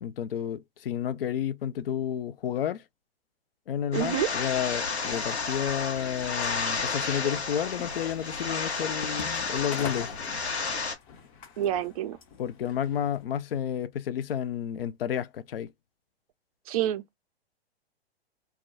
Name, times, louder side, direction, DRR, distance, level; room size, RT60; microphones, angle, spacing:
voice 1, 0.0-2.8 3.7-10.1 12.4-15.7, left 9 dB, 60° left, 0.5 m, -31 dB
sound 1, 3.9-10.9, left 4 dB, 85° left, 1.0 m, -31 dB
voice 2, 3.9-4.3 11.6-12.2 16.7-17.2, right 11 dB, 35° right, 0.4 m, -28 dB
sound 2, 4.9-13.3, left 6 dB, 45° left, 0.9 m, -46 dB
2.3 x 2.2 x 3.9 m
figure-of-eight pair, 105°, 32 cm